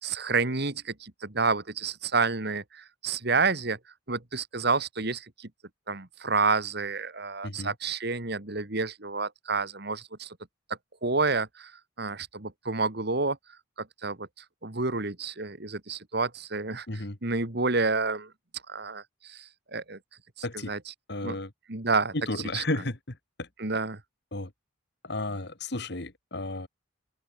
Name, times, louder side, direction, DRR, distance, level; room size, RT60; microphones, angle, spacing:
voice 1, 0.0-3.8 4.1-5.5 5.9-10.3 11.0-13.4 14.0-18.3 18.7-20.0 20.4-20.9 21.2-21.3 21.7-22.6 23.6-24.0, right 4 dB, 55° right, 2.0 m, -29 dB
voice 2, 7.4-7.7 16.9-17.2 20.4-20.7 21.1-21.5 22.1-23.5 24.3-24.5 25.0-26.7, left 2 dB, 55° left, 2.3 m, -33 dB
open air
head